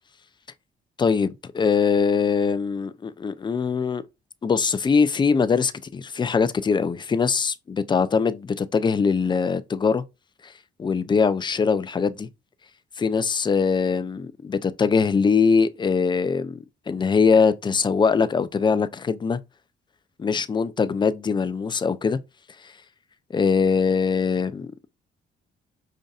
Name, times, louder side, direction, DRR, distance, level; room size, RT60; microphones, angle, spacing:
voice 1, 1.0-4.0 4.4-10.0 10.4-10.5 10.8-12.3 13.0-19.4 20.2-22.2 23.3-24.7, left 5 dB, 25° left, 0.4 m, -22 dB
5.3 x 2.6 x 2.4 m
cardioid pair, 90°, 20 cm